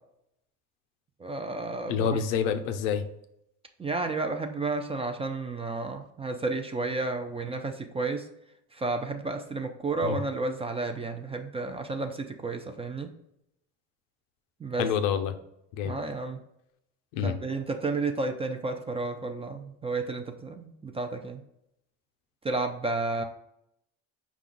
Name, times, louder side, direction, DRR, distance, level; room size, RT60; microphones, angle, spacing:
voice 1, 1.2-2.2 3.8-8.3 8.7-13.1 14.6-14.9 15.8-16.4 17.2-21.4 22.4-23.2, right 3 dB, 15° right, 5 dB, 0.3 m, -32 dB
voice 2, 1.9-3.0 10.0-10.2 14.8-15.4 15.8-16.0 17.1-17.4, left 7 dB, 75° left, 8 dB, 0.6 m, -27 dB
4.9 x 2.3 x 3.8 m, 0.79 s
hypercardioid pair, 70°, 38 cm